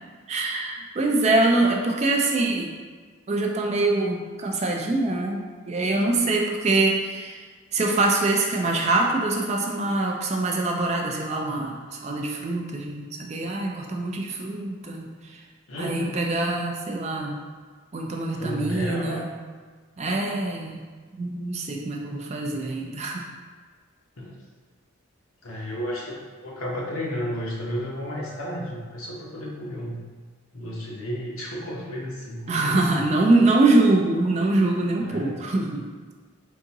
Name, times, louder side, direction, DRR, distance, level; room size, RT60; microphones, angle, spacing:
voice 1, 0.3-2.7 3.3-7.5 7.7-15.1 15.8-17.4 17.9-19.3 20.0-20.9 21.2-23.2 32.5-35.9, right 2 dB, 30° right, 1 dB, 0.4 m, -24 dB
voice 2, 15.7-16.2 18.3-19.3 24.2-24.4 25.4-30.0 30.5-33.2 35.0-35.4, equal, 80° left, -3 dB, 0.9 m, -33 dB
3.8 x 3.5 x 2.8 m, 1.5 s
head